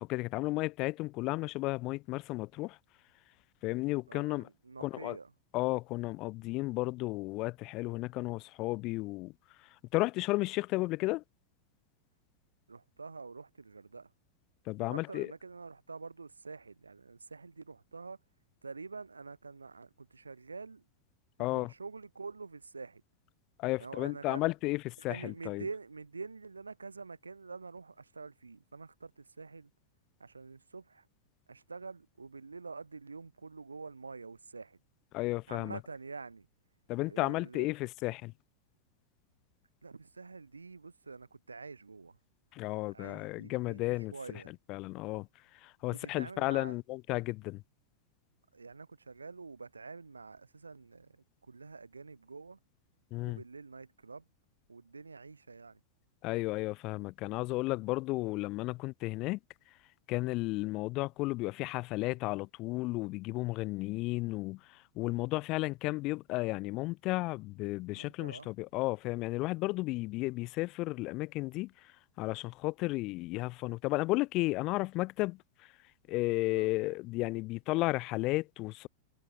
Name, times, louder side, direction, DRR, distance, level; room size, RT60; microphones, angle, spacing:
voice 1, 0.0-2.8 3.6-4.5 4.8-5.2 5.5-9.3 9.9-11.2 14.7-15.3 21.4-21.7 23.6-25.6 35.1-35.8 36.9-38.3 42.5-44.1 44.7-45.3 45.6-47.6 53.1-53.4 56.2-59.4 60.1-64.6 65.0-71.7 72.2-75.4 76.1-78.9, left 21 dB, 40° left, 0.4 m, -33 dB
voice 2, 4.1-5.3 12.7-14.1 14.8-18.2 18.6-20.8 21.4-23.0 23.8-24.4 25.1-29.7 30.2-31.1 31.5-34.8 35.5-36.5 37.1-37.7 39.8-42.2 42.6-44.5 45.9-46.8 48.5-52.6 53.2-54.3 54.7-55.8 60.5-60.7 67.9-68.5 76.5-76.7, right 4 dB, 80° right, 2.0 m, -47 dB
figure-of-eight pair, 90°, 0 cm